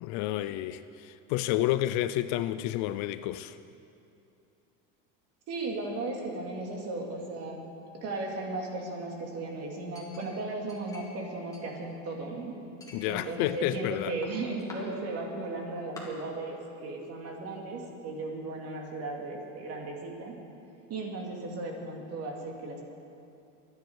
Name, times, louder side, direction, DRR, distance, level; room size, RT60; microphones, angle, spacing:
voice 1, 0.0-3.6 12.9-14.1, left 14 dB, 50° left, 0.5 m, -30 dB
voice 2, 5.5-7.6 8.0-12.5 13.1-20.3 20.9-22.8, right 2 dB, 40° right, 2.8 m, -36 dB
Chink clink, 9.9-11.2 11.5-12.3 12.8-13.9 14.2-14.8 15.4-15.5 16.0-16.1, left 3 dB, 10° left, 2.6 m, -50 dB
23.0 x 10.5 x 4.8 m
supercardioid pair, 140°, 37 cm